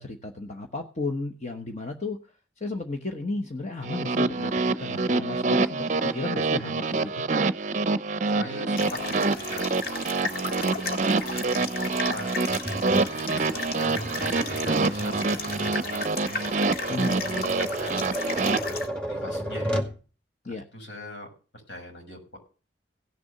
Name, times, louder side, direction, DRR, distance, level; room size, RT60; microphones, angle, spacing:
voice 1, 0.0-2.2 2.6-7.1 16.9-17.2 20.4-20.6, left 3 dB, 40° left, 4 dB, 1.1 m, -33 dB
sound 1, 3.8-18.6, right 3 dB, 40° right, 0.6 m, -26 dB
voice 2, 8.3-9.2 9.5-12.3 12.8-16.4 17.1-18.8 19.1-19.8 20.4-21.3 21.7-22.4, left 1 dB, 80° left, 1 dB, 6.3 m, -41 dB
sound 2, 8.8-18.9, left 3 dB, 55° left, 1.9 m, -35 dB
Tap, 12.5-20.0, equal, 5° left, 2.1 m, -34 dB
17.0 x 6.8 x 6.6 m, 0.37 s
head